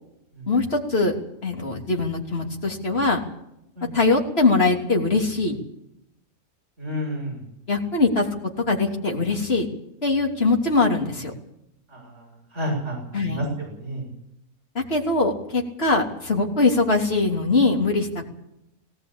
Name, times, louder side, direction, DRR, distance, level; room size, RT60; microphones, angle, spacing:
voice 1, 0.5-1.2 1.4-3.2 3.9-5.6 7.7-8.3 8.7-9.7 10.0-11.3 13.1-13.5 14.7-18.1, left 3 dB, 40° left, 1 dB, 3.3 m, -22 dB
voice 2, 6.8-7.4 11.9-12.3 12.5-14.1, equal, 50° right, -2 dB, 7.2 m, -30 dB
19.5 x 17.5 x 8.6 m, 0.82 s
omnidirectional pair, 1.5 m